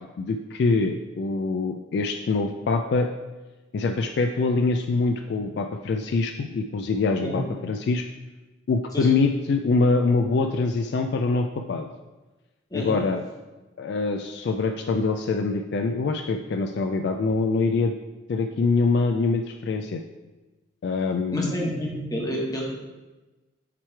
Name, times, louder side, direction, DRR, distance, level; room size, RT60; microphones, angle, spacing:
voice 1, 0.2-3.1 3.7-8.0 8.7-11.9 12.7-13.2 13.8-17.9 18.3-20.0 20.8-21.5, left 3 dB, 55° left, 5 dB, 0.3 m, -24 dB
voice 2, 21.3-22.7, equal, 20° left, -2 dB, 1.1 m, -29 dB
7.4 x 3.2 x 4.5 m, 1.2 s
head